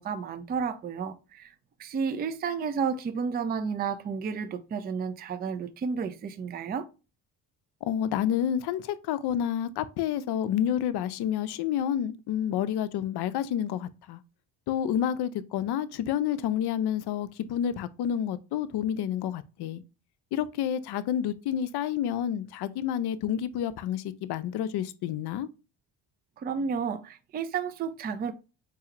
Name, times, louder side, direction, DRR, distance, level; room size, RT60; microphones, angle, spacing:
voice 1, 0.0-1.5 1.8-6.9 26.4-28.3, right 6 dB, 20° right, 0.3 m, -31 dB
voice 2, 7.8-14.2 14.7-19.8 20.3-25.5, left 10 dB, 55° left, 0.5 m, -29 dB
4.7 x 2.3 x 2.9 m
supercardioid pair, 70°, 48 cm